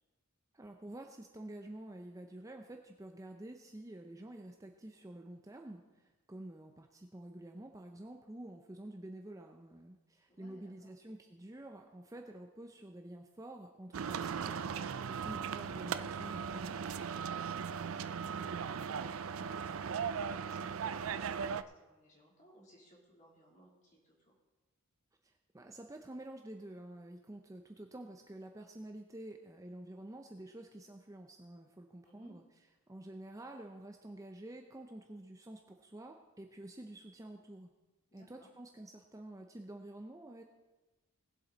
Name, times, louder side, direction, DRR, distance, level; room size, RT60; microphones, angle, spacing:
voice 1, 0.5-17.0 25.2-32.4 32.9-37.7 38.1-40.4, right 1 dB, 15° right, 3 dB, 0.6 m, -49 dB
voice 2, 10.3-10.9 20.1-24.3 32.0-32.3 38.1-38.5, equal, 35° left, -3 dB, 3.2 m, -62 dB
sound 1, 13.9-21.6, right 6 dB, 70° right, 0.4 m, -38 dB
19.0 x 7.7 x 4.0 m, 1.1 s
head